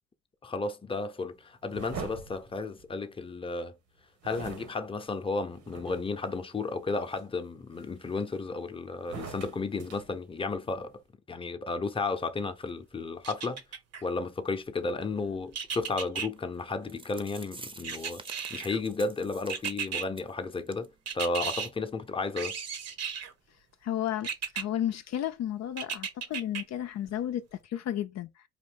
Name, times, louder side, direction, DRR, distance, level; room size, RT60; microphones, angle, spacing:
voice 1, 0.4-3.7 4.2-11.0 11.3-13.6 14.0-18.2 18.5-20.9 21.1-22.6, left 3 dB, 20° left, 0.7 m, -33 dB
sound 1, 1.7-3.3 4.2-6.3 6.8-7.2 7.8-8.6 9.0-10.9, right 6 dB, 75° right, 1.4 m, -44 dB
sound 2, 13.2-14.0 15.5-16.3 17.8-18.8 19.5-20.0 21.1-21.7 22.4-23.3 24.2-24.6 25.8-26.6 27.1-27.2, right 7 dB, 55° right, 0.9 m, -35 dB
sound 3, 16.6-16.7 16.9-20.3 20.7-20.9 21.2-21.3 21.7-21.8, right 3 dB, 15° right, 0.7 m, -48 dB
voice 2, 23.8-28.4, left 11 dB, 60° left, 0.5 m, -33 dB
4.2 x 2.6 x 3.6 m
cardioid pair, 90°, 30 cm